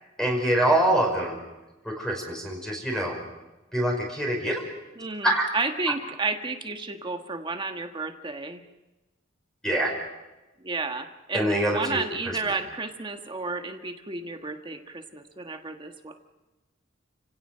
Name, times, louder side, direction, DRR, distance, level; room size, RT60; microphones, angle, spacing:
voice 1, 0.2-1.4 1.8-3.2 3.7-4.6 5.2-5.5 9.6-10.0 11.3-12.4, right 1 dB, 5° left, 0 dB, 5.4 m, -25 dB
voice 2, 5.0-8.6 10.6-16.1, right 3 dB, 25° right, 5 dB, 1.4 m, -32 dB
30.0 x 17.5 x 6.7 m, 1.1 s
head